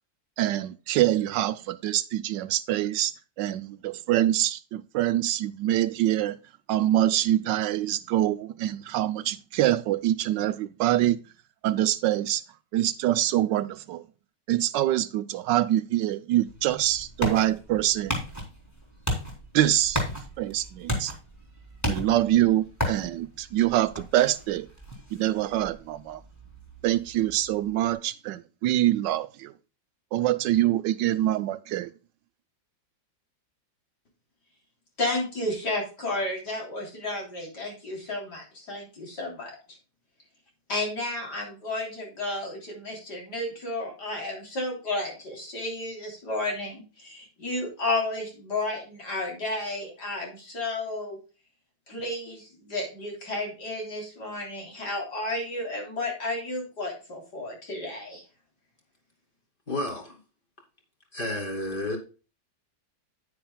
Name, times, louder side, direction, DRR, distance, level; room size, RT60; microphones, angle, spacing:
voice 1, 0.4-3.1 3.4-6.4 6.7-11.2 11.6-12.4 12.7-14.0 14.5-18.2 19.5-20.0 20.4-21.1 21.9-24.7 25.1-26.2 26.8-29.5 30.1-31.9, right 13 dB, 75° right, 1.2 m, -25 dB
sound 1, 16.5-27.9, equal, 10° left, 2.9 m, -35 dB
voice 2, 35.0-39.6 40.7-51.2 51.9-58.2, left 2 dB, 60° left, 3.9 m, -32 dB
voice 3, 59.7-60.2 61.1-62.0, left 1 dB, 25° left, 2.6 m, -31 dB
9.6 x 9.6 x 2.2 m
omnidirectional pair, 2.0 m